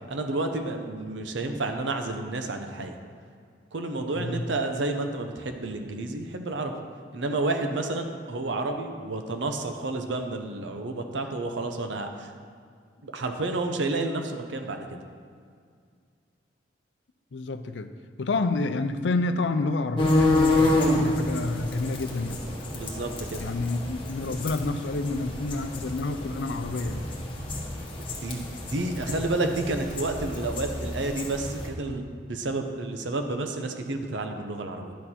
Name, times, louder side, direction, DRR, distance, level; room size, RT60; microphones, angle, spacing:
voice 1, 0.1-3.0 3.7-6.7 7.1-12.3 13.0-15.0 22.7-23.4 28.1-34.9, right 2 dB, 80° right, 5 dB, 0.7 m, -30 dB
voice 2, 4.1-4.5 17.3-17.9 18.2-22.4 23.4-27.2, left 3 dB, 75° left, 9 dB, 0.5 m, -29 dB
sound 1, 20.0-31.7, left 2 dB, 25° left, 1.3 m, -28 dB
10.5 x 6.7 x 4.3 m, 2.2 s
head